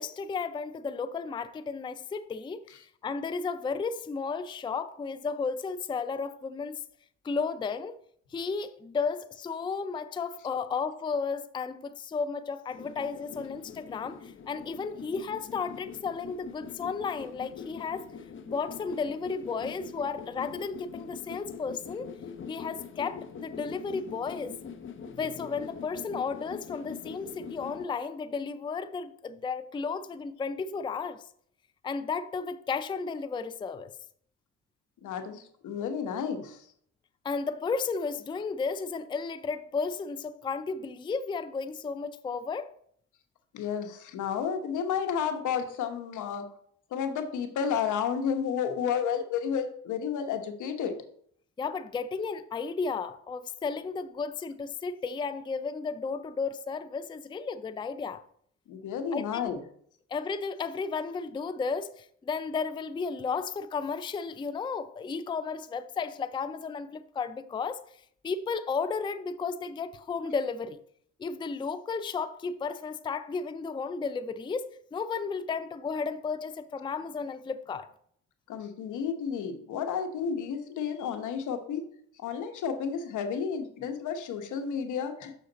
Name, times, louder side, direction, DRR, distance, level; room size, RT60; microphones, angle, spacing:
voice 1, 0.0-6.8 7.2-8.0 8.3-18.1 18.4-22.1 22.5-24.6 25.2-31.3 31.8-33.9 37.2-42.7 51.6-58.2 59.1-59.5 60.1-67.8 68.2-70.8 71.2-77.9, left 5 dB, 15° left, 0.4 m, -33 dB
sound 1, 12.7-27.9, left 6 dB, 40° left, 0.8 m, -43 dB
voice 2, 35.0-36.6 43.5-46.4 46.9-51.0 58.7-59.6 78.5-81.8 82.2-85.3, left 7 dB, 80° left, 1.1 m, -31 dB
6.5 x 6.3 x 4.0 m
cardioid pair, 90°, 30 cm